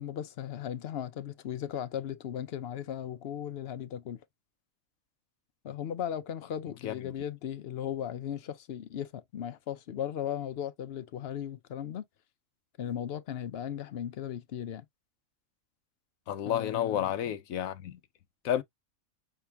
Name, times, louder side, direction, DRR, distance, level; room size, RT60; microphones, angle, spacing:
voice 1, 0.0-4.2 5.6-12.1 12.8-14.8 16.4-17.3, left 9 dB, 60° left, 0.7 m, -37 dB
voice 2, 16.3-18.0 18.4-18.6, left 10 dB, 85° left, 1.1 m, -30 dB
5.7 x 2.7 x 3.4 m
omnidirectional pair, 1.4 m